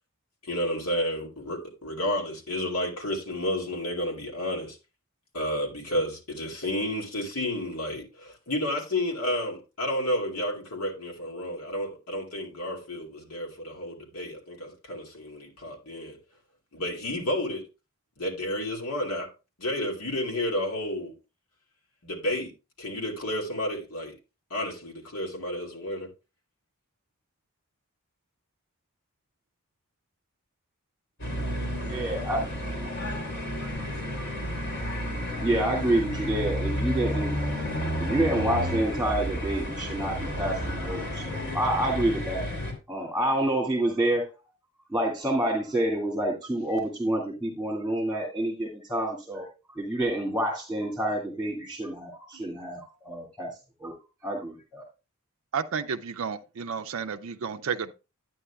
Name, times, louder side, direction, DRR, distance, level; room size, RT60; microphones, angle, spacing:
voice 1, 0.4-4.8 5.3-16.2 16.7-17.7 18.2-19.3 19.6-21.2 22.0-22.5 22.8-24.2 24.5-26.1, left 1 dB, 85° left, 2.3 m, -31 dB
sound 1, 31.2-42.7, equal, 55° left, 3.0 m, -31 dB
voice 2, 31.9-32.4 33.6-33.9 34.2-34.3 34.7-35.0 35.4-37.3 38.0-42.5 42.9-44.3 44.9-49.5 49.8-53.5 53.8-53.9 54.2-54.8, right 1 dB, ahead, 1.9 m, -28 dB
voice 3, 55.5-57.9, right 6 dB, 70° right, 0.4 m, -31 dB
11.0 x 9.2 x 2.2 m
head